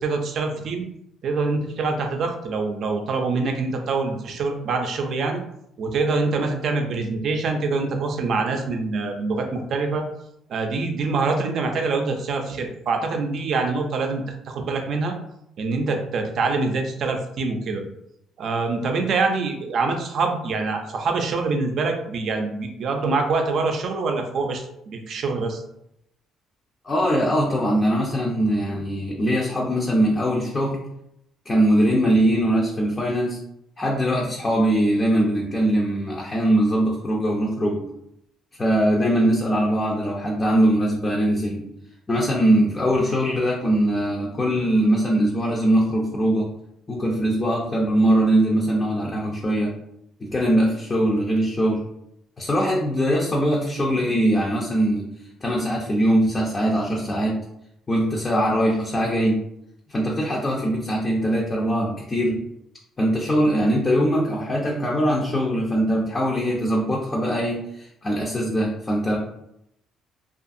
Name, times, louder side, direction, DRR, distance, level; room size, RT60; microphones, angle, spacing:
voice 1, 0.0-0.9 1.2-5.4 5.8-10.0 10.5-15.1 15.6-17.8 18.4-25.6, right 3 dB, 60° right, 4 dB, 0.5 m, -25 dB
voice 2, 26.8-30.8 31.5-33.4 33.8-37.9 38.6-41.6 42.1-46.5 46.9-49.7 50.2-51.8 52.4-55.1 55.4-57.4 57.9-59.4 59.9-62.4 63.0-69.2, right 1 dB, 25° left, -3 dB, 0.5 m, -21 dB
2.6 x 2.4 x 2.5 m, 0.78 s
cardioid pair, 110°, 0 cm